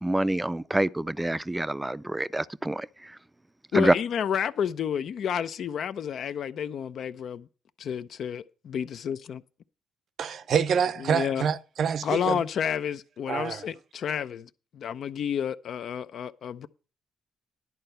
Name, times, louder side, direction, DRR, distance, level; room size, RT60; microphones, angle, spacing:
voice 1, 0.0-3.2 3.7-3.9, right 1 dB, 10° right, 0.4 m, -26 dB
voice 2, 3.7-7.5 7.8-9.4 11.0-11.4 12.0-16.7, left 8 dB, 65° left, 0.5 m, -30 dB
voice 3, 10.2-12.4 13.3-13.7, right 7 dB, 60° right, 0.6 m, -27 dB
11.0 x 4.4 x 8.0 m
cardioid pair, 90°, 0 cm